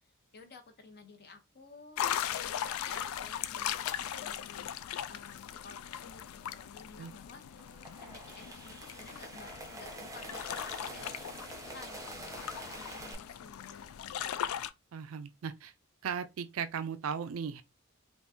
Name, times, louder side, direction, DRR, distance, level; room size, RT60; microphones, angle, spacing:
voice 1, 0.3-4.7 5.1-7.7 8.0-14.4, left 3 dB, 50° left, 0.8 m, -53 dB
sound 1, 2.0-14.7, left 10 dB, 75° left, 0.3 m, -39 dB
sound 2, 7.6-13.1, right 1 dB, 15° right, 0.6 m, -46 dB
voice 2, 14.9-15.7 16.0-17.6, right 7 dB, 70° right, 0.4 m, -37 dB
3.6 x 2.6 x 2.6 m
head